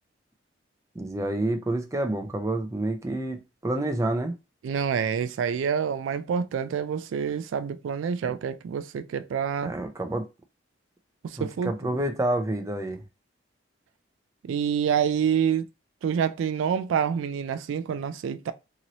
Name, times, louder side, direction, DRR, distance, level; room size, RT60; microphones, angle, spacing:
voice 1, 1.0-4.3 9.6-10.3 11.4-13.0, right 1 dB, 15° right, 0.4 m, -28 dB
voice 2, 4.6-9.7 11.2-12.0 14.4-15.7 16.0-18.5, right 7 dB, 85° right, 0.3 m, -27 dB
2.9 x 2.6 x 2.9 m
head